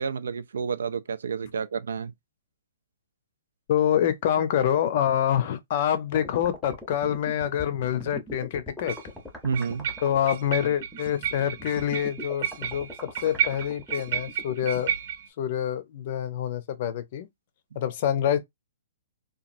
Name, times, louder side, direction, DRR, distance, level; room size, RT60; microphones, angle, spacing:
voice 1, 0.0-2.1 9.4-9.9, right 5 dB, 85° right, 0.4 m, -30 dB
voice 2, 3.7-9.0 10.0-12.9 13.2-14.9 15.4-17.3 17.7-18.4, left 10 dB, 45° left, 0.5 m, -26 dB
sound 1, 6.1-14.8, left 1 dB, ahead, 0.7 m, -41 dB
sound 2, 6.7-6.8 8.9-9.1 9.5-15.3, right 9 dB, 55° right, 0.8 m, -32 dB
2.9 x 2.3 x 2.5 m
hypercardioid pair, 155°, 0 cm